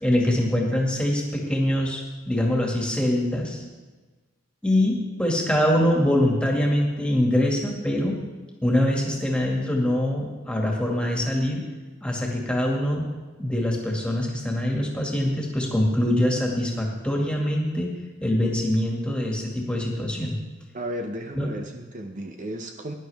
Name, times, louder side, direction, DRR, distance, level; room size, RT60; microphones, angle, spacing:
voice 1, 0.0-3.6 4.6-8.2 8.6-11.6 12.0-13.0 13.4-17.9 18.2-20.3 21.3-21.5, left 1 dB, 5° left, -2 dB, 2.1 m, -24 dB
voice 2, 20.7-22.9, right 1 dB, 40° right, 5 dB, 0.7 m, -34 dB
17.0 x 11.0 x 3.5 m, 1.3 s
head